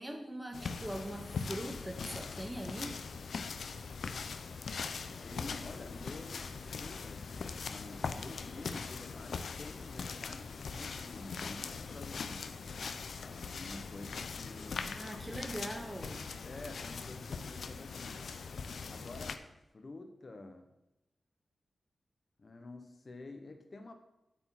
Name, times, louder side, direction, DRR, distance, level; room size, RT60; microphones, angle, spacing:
voice 1, 0.0-2.9 14.9-16.3, right 1 dB, 10° right, 3 dB, 1.2 m, -41 dB
sound 1, 0.5-19.4, left 5 dB, 75° left, 0.7 m, -41 dB
voice 2, 5.2-12.5 13.2-15.0 16.4-18.3 18.9-20.7 22.4-23.9, left 2 dB, 40° left, 5 dB, 1.1 m, -49 dB
9.7 x 8.2 x 6.0 m, 0.95 s
wide cardioid pair, 110°, 0 cm